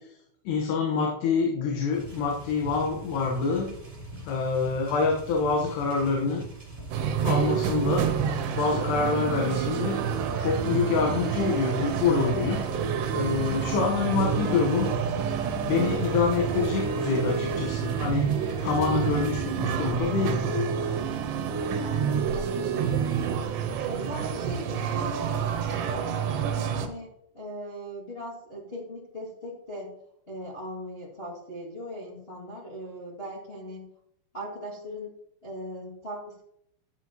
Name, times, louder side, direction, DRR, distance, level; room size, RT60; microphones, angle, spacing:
voice 1, 0.5-3.7 4.2-6.4 7.2-8.0 8.5-10.1 10.4-12.6 13.1-14.9 15.6-18.3 18.6-20.9, left 5 dB, 70° left, 0 dB, 3.2 m, -26 dB
sound 1, 1.9-19.5, right 2 dB, 10° right, 3.1 m, -41 dB
sound 2, 6.9-26.9, right 7 dB, 75° right, 3.1 m, -28 dB
voice 2, 21.8-23.5 23.8-27.1 27.3-29.9 30.3-33.9 34.3-35.1 35.4-36.4, equal, 30° left, -5 dB, 1.0 m, -39 dB
12.5 x 7.9 x 3.0 m, 0.73 s
omnidirectional pair, 5.2 m